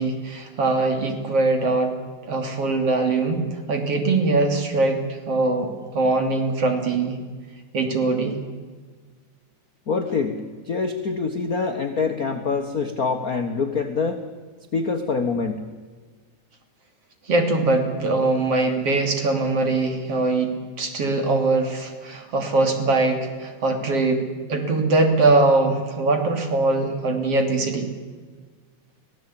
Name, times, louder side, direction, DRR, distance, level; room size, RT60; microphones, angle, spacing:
voice 1, 0.0-1.9 2.2-3.4 3.7-5.0 5.3-7.2 7.7-8.4 17.3-24.2 24.5-27.9, right 3 dB, 50° right, 4 dB, 3.6 m, -22 dB
voice 2, 9.9-14.2 14.7-15.6, left 4 dB, 55° left, 5 dB, 1.0 m, -25 dB
25.0 x 17.5 x 8.7 m, 1.5 s
omnidirectional pair, 3.7 m